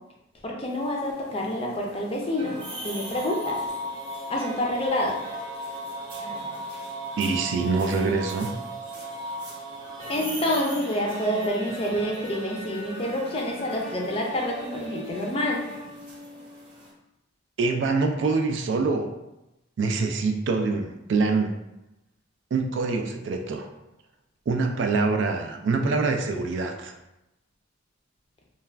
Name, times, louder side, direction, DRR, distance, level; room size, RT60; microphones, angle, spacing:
voice 1, 0.4-2.6 2.8-3.7 4.3-5.2 10.1-15.6, left 1 dB, 30° left, -1 dB, 0.4 m, -27 dB
sound 1, 0.6-16.9, right 1 dB, 25° right, 0.7 m, -37 dB
voice 2, 7.2-8.6 17.6-19.1 19.8-21.5 22.5-23.7 24.5-26.9, right 4 dB, 60° right, 4 dB, 0.3 m, -25 dB
2.3 x 2.2 x 3.2 m, 0.93 s
head